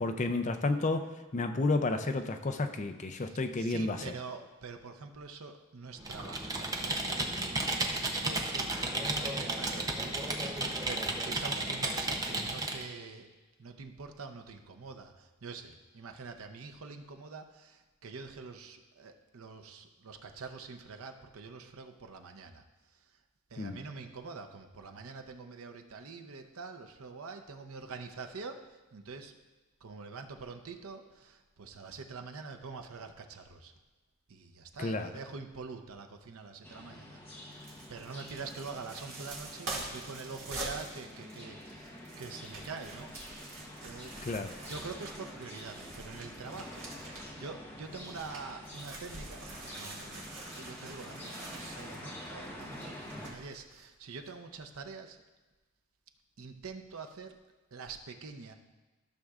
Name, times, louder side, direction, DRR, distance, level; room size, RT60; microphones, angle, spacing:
voice 1, 0.0-4.0 23.6-23.8 34.8-35.1 44.2-44.5, left 2 dB, 35° left, 7 dB, 0.5 m, -31 dB
voice 2, 3.2-10.5 10.9-13.3 13.6-22.6 23.5-29.4 29.8-33.7 34.3-43.2 43.8-44.2 44.6-50.2 50.5-55.2 56.4-57.4 57.7-58.5, right 4 dB, 85° right, 5 dB, 0.7 m, -45 dB
Computer keyboard, 6.0-12.8, right 2 dB, 15° right, 0.6 m, -33 dB
sound 1, 36.6-53.3, left 1 dB, 10° left, 1.1 m, -47 dB
sound 2, 37.5-47.5 47.8-53.8 54.2-54.3, right 2 dB, 60° right, 2.0 m, -46 dB
14.0 x 6.4 x 2.4 m, 1.2 s
head